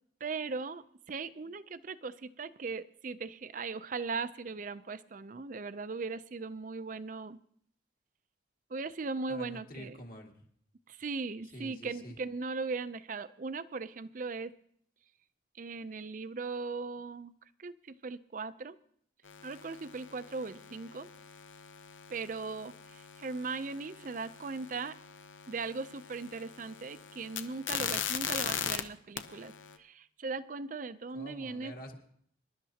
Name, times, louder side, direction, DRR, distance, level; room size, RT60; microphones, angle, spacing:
voice 1, 0.2-7.4 8.7-10.0 10.9-14.5 15.6-17.3 17.6-18.8 19.4-21.1 22.1-25.0 25.5-29.5 29.8-31.7, right 4 dB, 45° right, 14 dB, 0.5 m, -38 dB
voice 2, 9.3-10.3 11.5-12.2 31.1-32.0, equal, 50° left, 1 dB, 2.0 m, -47 dB
sound 1, 19.3-28.8 29.2-29.8, left 8 dB, 85° left, 0.8 m, -40 dB
25.5 x 12.0 x 2.8 m, 0.64 s
head